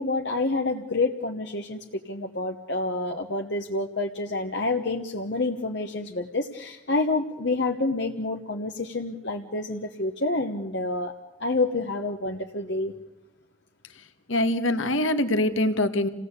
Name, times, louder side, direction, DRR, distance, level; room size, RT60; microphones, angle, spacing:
voice 1, 0.0-1.8 2.1-11.1 11.4-12.9, left 2 dB, 60° left, 2 dB, 1.2 m, -28 dB
voice 2, 14.3-16.1, left 1 dB, 80° left, 9 dB, 1.7 m, -23 dB
28.0 x 17.5 x 8.3 m, 1.0 s
head